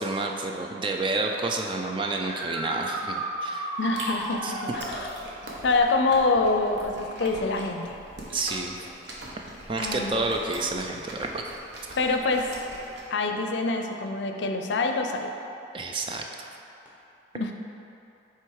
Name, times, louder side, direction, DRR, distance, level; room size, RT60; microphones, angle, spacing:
voice 1, 0.0-3.7 4.4-4.6 8.3-8.8 9.7-11.4 15.7-16.3, right 3 dB, 25° right, 2 dB, 0.4 m, -29 dB
sound 1, 2.1-5.1 8.4-8.5 10.5-10.6 16.8-16.9, right 1 dB, 10° right, 1.0 m, -33 dB
voice 2, 3.8-5.1 5.6-8.0 9.8-10.2 12.0-12.5 13.1-15.3 17.3-17.5, left 3 dB, 70° left, 4 dB, 0.5 m, -26 dB
Chewing mastication, 3.8-13.0, right 1 dB, 65° right, 1.0 m, -42 dB
7.7 x 3.4 x 4.7 m, 2.7 s
head